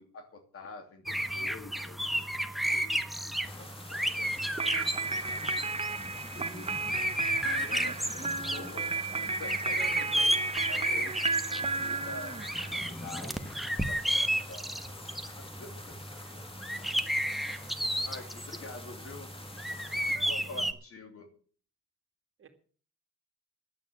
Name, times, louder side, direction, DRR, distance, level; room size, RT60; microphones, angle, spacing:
voice 1, 0.0-5.4 6.2-7.1 7.4-9.8 10.1-10.4 10.7-11.3 11.7-12.4 12.7-14.8 15.1-16.4 18.0-19.3 19.9-21.3, left 3 dB, 50° left, 6 dB, 3.0 m, -48 dB
sound 1, 1.1-20.7, equal, ahead, 1.2 m, -33 dB
sound 2, 3.4-20.2, left 2 dB, 20° left, 1.7 m, -49 dB
sound 3, 4.6-12.9, right 3 dB, 20° right, 1.0 m, -33 dB
voice 2, 9.8-10.2 10.9-11.2 20.1-20.6 22.4-22.5, right 6 dB, 45° right, 6 dB, 2.4 m, -48 dB
11.0 x 9.0 x 8.5 m, 0.43 s
cardioid pair, 90°, 30 cm